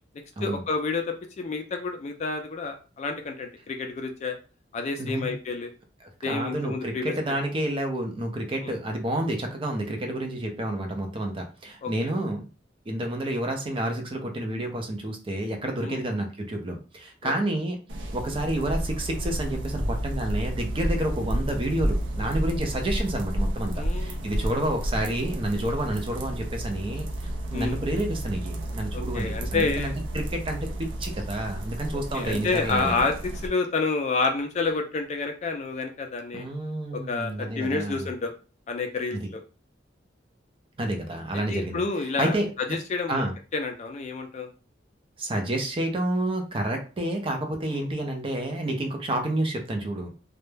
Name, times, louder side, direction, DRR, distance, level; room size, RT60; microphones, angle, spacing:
voice 1, 0.4-4.4 4.7-5.7 6.2-7.1 8.6-8.7 11.8-12.1 15.8-16.0 17.2-17.3 23.8-24.4 27.5-27.8 28.9-29.9 32.1-36.5 36.9-38.3 38.7-39.4 41.5-43.2 43.5-44.5 47.7-47.8, left 4 dB, 35° left, 5 dB, 0.3 m, -29 dB
voice 2, 5.0-5.3 6.0-12.5 12.9-17.8 18.1-33.0 36.3-38.1 39.1-39.3 40.8-41.8 42.2-42.8 43.1-43.3 45.2-50.1, right 1 dB, 30° right, 3 dB, 0.4 m, -29 dB
sound 1, 17.9-33.5, right 1 dB, 80° right, 0.5 m, -31 dB
2.2 x 2.0 x 3.1 m, 0.34 s
head